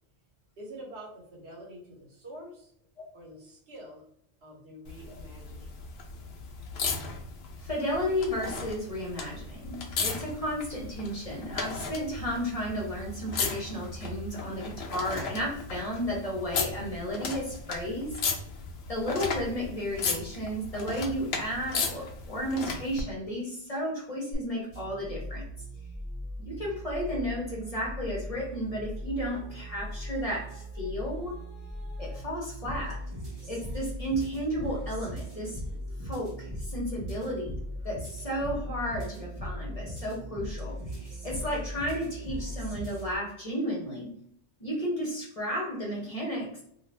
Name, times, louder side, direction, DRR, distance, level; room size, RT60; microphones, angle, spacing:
voice 1, 0.6-2.7 3.1-4.1 4.4-5.8, right 1 dB, 70° right, -2 dB, 1.2 m, -46 dB
sound 1, 4.8-23.0 24.3-24.4, left 4 dB, 75° left, 0.8 m, -36 dB
voice 2, 7.6-18.2 18.9-25.5 26.4-31.4 32.0-33.0 33.5-35.6 36.0-37.6 37.8-44.1 44.6-46.6, equal, 35° left, -4 dB, 0.9 m, -33 dB
sound 2, 24.7-43.2, equal, 30° right, 0.9 m, -39 dB
2.5 x 2.4 x 3.3 m, 0.69 s
omnidirectional pair, 1.1 m